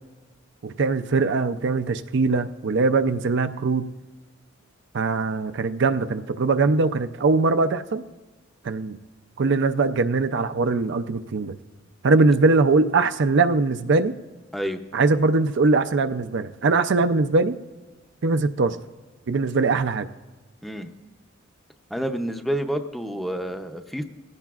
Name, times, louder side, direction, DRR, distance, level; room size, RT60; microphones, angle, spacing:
voice 1, 0.6-3.8 4.9-8.0 8.6-9.0 9.4-11.5 12.0-14.1 14.9-17.6 18.2-18.8 19.3-20.1, right 3 dB, 65° right, 9 dB, 0.5 m, -21 dB
voice 2, 21.9-24.0, equal, ahead, 5 dB, 0.6 m, -28 dB
19.5 x 16.0 x 2.4 m, 1.2 s
head